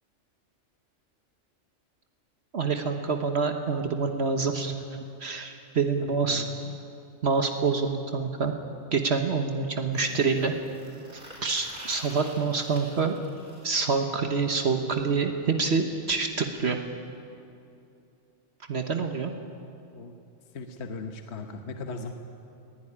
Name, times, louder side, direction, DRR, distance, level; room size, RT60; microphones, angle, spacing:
voice 1, 2.5-4.7 5.2-6.5 7.2-8.5 8.9-10.5 11.4-13.2 13.6-16.8 18.7-19.3, right 5 dB, 60° right, 5 dB, 1.4 m, -26 dB
voice 2, 6.3-6.7 19.9-20.2 20.5-22.1, left 3 dB, 65° left, 5 dB, 1.3 m, -38 dB
sound 1, 9.9-13.8 15.7-15.8 16.1-16.2 16.5-16.6 17.5-17.6, equal, 40° right, 4.7 m, -47 dB
20.0 x 17.0 x 9.9 m, 2.7 s
omnidirectional pair, 1.2 m